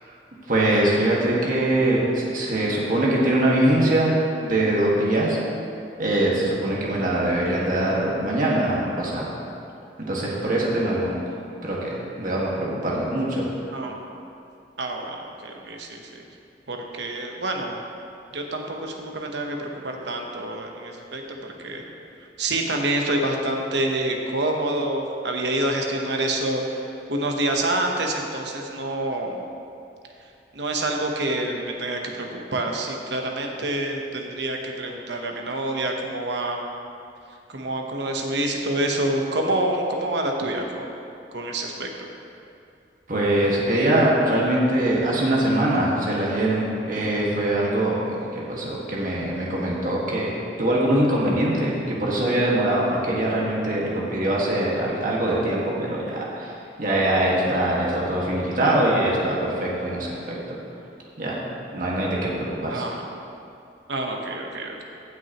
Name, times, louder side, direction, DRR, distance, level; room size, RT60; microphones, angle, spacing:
voice 1, 0.5-5.4 6.0-9.3 10.1-11.2 11.6-13.5 43.1-56.5 56.8-60.3 61.2-61.4 61.7-62.8, right 1 dB, 50° right, -5 dB, 1.7 m, -23 dB
voice 2, 14.8-16.1 16.7-17.7 18.3-21.8 22.4-29.4 30.5-36.6 37.5-40.9 41.3-42.1 62.7-63.0 63.9-64.8, right 1 dB, 75° right, 2 dB, 1.0 m, -27 dB
17.0 x 6.2 x 3.0 m, 2.6 s
head